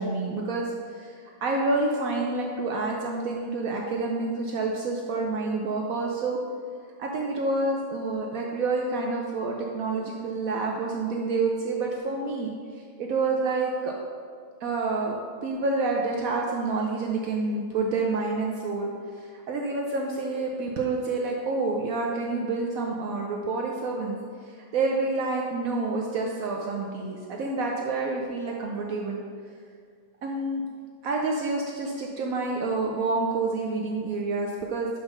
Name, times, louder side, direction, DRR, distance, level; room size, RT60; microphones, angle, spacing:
voice 1, 0.0-6.4 7.0-13.9 14.6-15.2 15.4-18.9 19.2-24.2 24.5-29.2 30.2-30.6 31.0-34.9, right 3 dB, 80° right, 0 dB, 0.7 m, -28 dB
5.7 x 5.7 x 5.5 m, 2.1 s
omnidirectional pair, 2.2 m